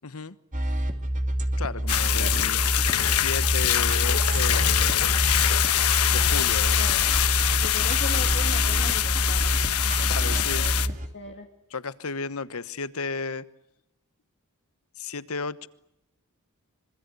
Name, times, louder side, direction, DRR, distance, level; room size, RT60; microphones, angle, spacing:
voice 1, 0.0-0.4 1.6-5.3 6.1-6.8 10.1-10.7 11.7-13.4 15.0-15.7, left 4 dB, 70° left, 15 dB, 1.2 m, -34 dB
sound 1, 0.5-11.1, equal, 35° right, 2.7 m, -27 dB
sound 2, 1.9-10.9, left 11 dB, 85° left, 1.2 m, -24 dB
voice 2, 7.6-9.6 9.8-11.5, left 3 dB, 50° left, 3 dB, 2.3 m, -38 dB
25.5 x 25.5 x 8.2 m, 0.84 s
head